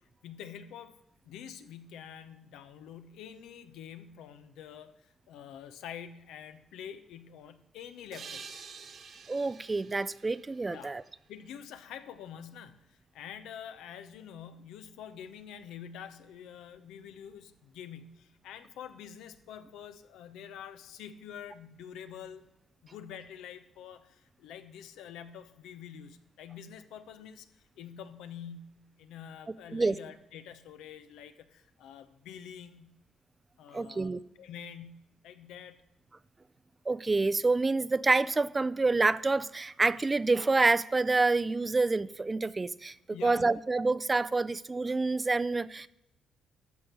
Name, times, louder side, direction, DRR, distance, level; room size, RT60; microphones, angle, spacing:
voice 1, 0.0-1.0 1.2-8.4 10.7-10.9 11.3-22.4 22.8-32.9 33.6-35.8 43.1-43.6, left 8 dB, 90° left, 11 dB, 0.7 m, -47 dB
sound 1, 8.1-11.6, right 5 dB, 55° right, 1.4 m, -49 dB
voice 2, 9.3-11.0 29.7-30.0 33.7-34.2 36.9-42.9 43.2-45.9, right 3 dB, 25° right, 18 dB, 0.4 m, -27 dB
12.5 x 4.7 x 6.6 m, 0.85 s
cardioid pair, 90°, 0 cm